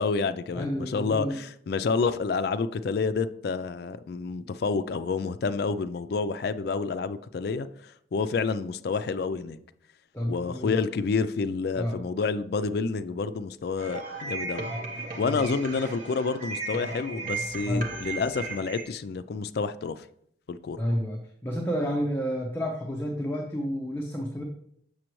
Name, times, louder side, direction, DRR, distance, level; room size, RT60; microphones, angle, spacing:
voice 1, 0.0-9.6 10.3-14.7 15.2-20.0 20.5-20.8, left 4 dB, 55° left, 13 dB, 0.3 m, -29 dB
voice 2, 0.5-1.4 10.1-10.8 11.7-12.0 15.3-15.4 17.7-17.9 20.8-24.4, equal, 10° left, 0 dB, 0.6 m, -30 dB
sound 1, 13.8-18.8, right 3 dB, 45° right, 1.0 m, -35 dB
6.8 x 6.3 x 3.0 m, 0.70 s
head